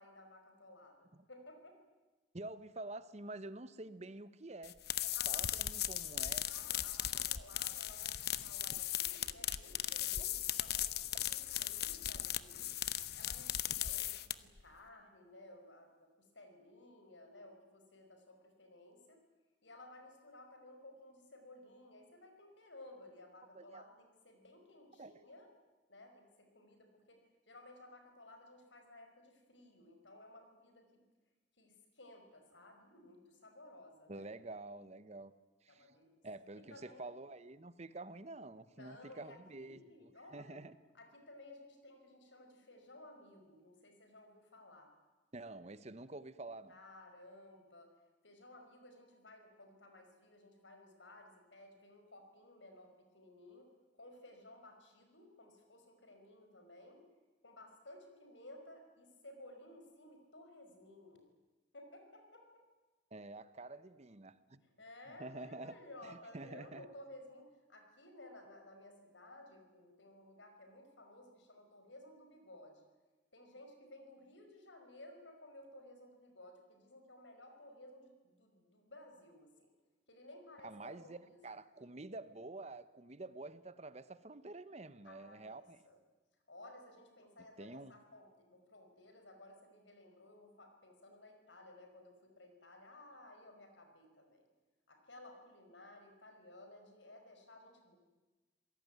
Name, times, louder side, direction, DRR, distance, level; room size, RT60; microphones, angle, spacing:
voice 1, 0.0-1.8 5.0-5.6 6.5-12.7 13.1-19.2 19.6-25.5 25.9-27.2 27.5-31.0 31.6-34.3 35.7-36.2 36.7-37.1 38.7-40.6 40.9-44.9 46.7-47.9 48.2-53.7 53.9-57.0 57.4-61.3 61.7-62.6 64.6-72.9 73.3-79.7 80.1-81.6 85.0-86.0 86.5-94.5 94.9-98.0, left 1 dB, 85° left, 5 dB, 5.2 m, -57 dB
voice 2, 2.3-4.8 5.3-6.5 23.5-23.8 25.0-25.1 34.1-35.3 35.6-35.9 36.2-40.7 45.3-46.7 63.1-64.6 65.2-65.7 66.1-66.9 80.6-85.8 87.6-87.9, right 2 dB, 35° right, 14 dB, 1.0 m, -48 dB
sound 1, 4.6-14.6, left 12 dB, 60° left, 0.9 m, -37 dB
27.0 x 18.0 x 9.4 m, 1.2 s
head